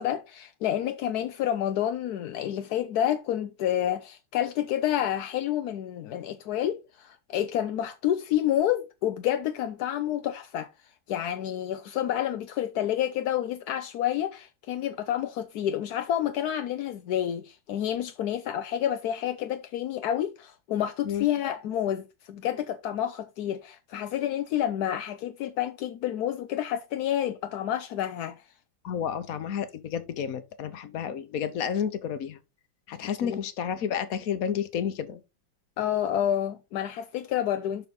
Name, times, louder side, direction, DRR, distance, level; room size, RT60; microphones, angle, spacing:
voice 1, 0.0-28.4 33.2-33.4 35.8-37.9, left 11 dB, 70° left, 1.0 m, -29 dB
voice 2, 28.8-32.4 32.9-35.2, left 8 dB, 55° left, 1.2 m, -31 dB
11.5 x 4.1 x 4.0 m
omnidirectional pair, 2.1 m